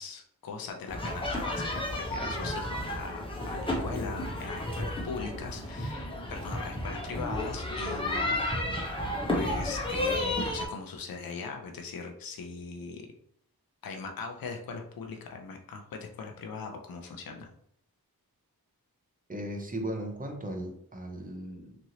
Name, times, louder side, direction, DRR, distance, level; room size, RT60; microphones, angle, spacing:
voice 1, 0.0-8.4 9.3-13.1 13.8-17.5, left 4 dB, 70° left, 3 dB, 0.5 m, -40 dB
sound 1, 0.9-10.7, left 1 dB, 15° left, 0.7 m, -32 dB
voice 2, 19.3-21.8, right 1 dB, 25° right, 3 dB, 0.6 m, -37 dB
3.0 x 2.6 x 2.7 m, 0.68 s
wide cardioid pair, 65°, 37 cm